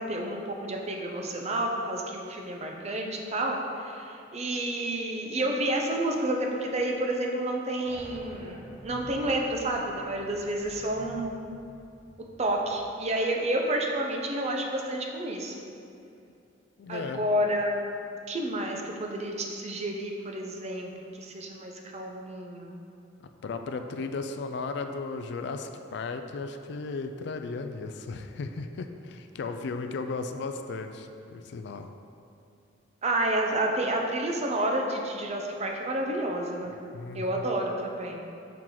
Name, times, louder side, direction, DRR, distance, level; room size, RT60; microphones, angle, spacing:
voice 1, 0.0-11.3 12.4-15.6 16.9-17.8 18.3-22.8 33.0-36.8 37.1-38.2, right 1 dB, 35° right, 1 dB, 0.6 m, -30 dB
sound 1, 7.9-13.1, equal, 5° right, 0.9 m, -49 dB
voice 2, 16.8-17.2 23.4-31.9 36.9-37.4, left 4 dB, 60° left, 7 dB, 0.3 m, -35 dB
5.8 x 4.6 x 3.8 m, 2.6 s
head